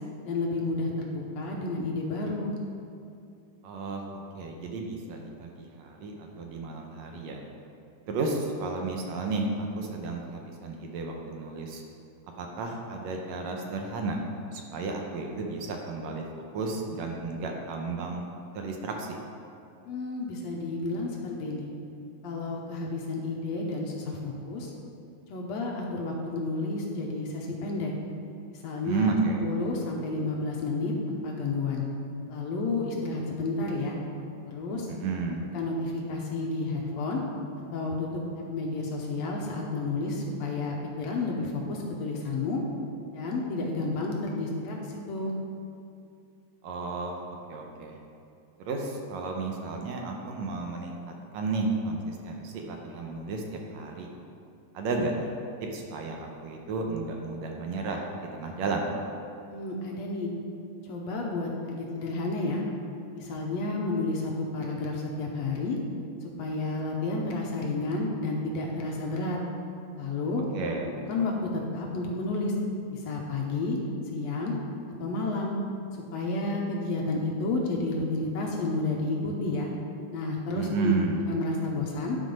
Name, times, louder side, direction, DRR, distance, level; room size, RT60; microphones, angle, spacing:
voice 1, 0.3-2.6 19.8-21.7 22.2-24.7 25.3-27.9 28.5-31.9 32.3-34.0 34.5-34.9 35.5-37.2 37.7-42.6 43.1-45.3 59.5-60.3 60.8-62.6 63.1-65.8 66.4-69.4 70.0-70.4 71.1-72.6 72.9-73.8 74.1-74.6 75.0-75.5 76.1-79.7 80.1-81.0 81.3-82.2, left 2 dB, 70° left, -1 dB, 1.8 m, -31 dB
voice 2, 3.6-7.4 8.1-11.8 12.4-14.2 14.5-18.2 18.6-19.2 28.8-29.4 34.9-35.4 46.6-47.2 47.5-48.0 48.7-53.4 53.7-54.1 54.7-55.3 55.7-58.0 58.3-58.9 70.5-70.9 80.5-81.2, right 3 dB, 75° right, 1 dB, 1.9 m, -32 dB
11.0 x 4.2 x 5.3 m, 2.5 s
omnidirectional pair, 3.4 m